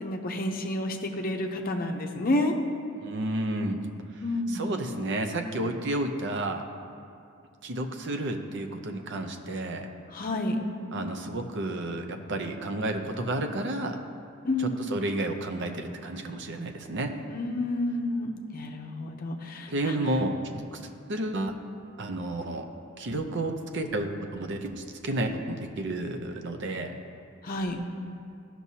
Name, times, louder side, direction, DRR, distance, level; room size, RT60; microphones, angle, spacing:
voice 1, 0.0-2.5 4.2-4.7 10.1-10.6 14.4-14.8 17.3-20.0 27.4-27.8, left 1 dB, 45° left, 3 dB, 0.7 m, -30 dB
voice 2, 3.0-3.8 4.5-6.6 7.6-9.9 10.9-14.0 14.6-17.1 19.7-20.8 21.1-21.5 22.0-22.7 23.0-27.0, right 1 dB, 55° right, 5 dB, 0.6 m, -31 dB
13.5 x 6.0 x 2.8 m, 2.5 s
head